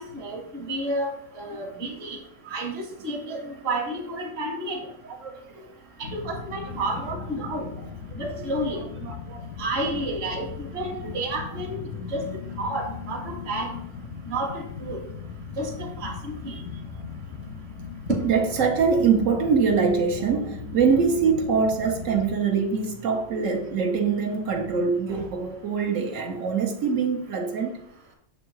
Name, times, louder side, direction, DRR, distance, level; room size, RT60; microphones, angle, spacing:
voice 1, 0.0-2.2 2.5-4.8 6.0-7.7 8.1-8.8 9.6-12.2 12.6-13.7 14.3-15.0 15.6-16.5 18.1-18.2, right 1 dB, 55° right, 1.3 m, -30 dB
voice 2, 5.1-5.7 8.1-8.5 9.0-9.4 11.0-11.1 16.5-16.6 18.2-27.7, right 5 dB, 90° right, 1.3 m, -24 dB
sound 1, 6.0-22.4, left 5 dB, 80° left, 0.9 m, -38 dB
6.3 x 3.7 x 4.6 m
omnidirectional pair, 1.3 m